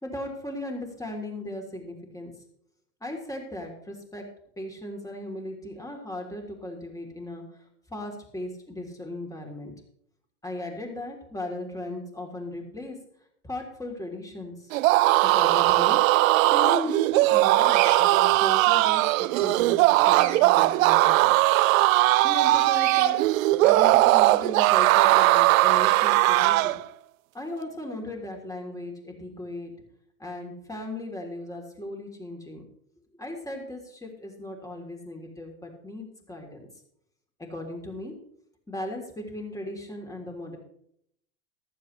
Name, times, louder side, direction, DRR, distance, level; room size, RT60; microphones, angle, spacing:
voice 1, 0.0-2.3 3.0-4.2 4.6-7.4 7.9-9.7 10.4-13.0 13.4-14.7 15.2-16.0 16.5-19.8 20.1-21.4 22.2-23.2 23.6-26.8 27.3-29.7 30.2-32.6 33.2-36.7 37.4-38.1 38.7-40.6, left 1 dB, 5° left, 2 dB, 3.4 m, -37 dB
sound 1, 14.7-26.8, right 18 dB, 60° right, 0.6 m, -20 dB
Bird vocalization bird call bird song, 17.7-18.0 20.1-20.4 22.7-23.1, right 11 dB, 40° right, 1.8 m, -31 dB
15.0 x 12.5 x 3.3 m, 0.71 s
hypercardioid pair, 105°, 45 cm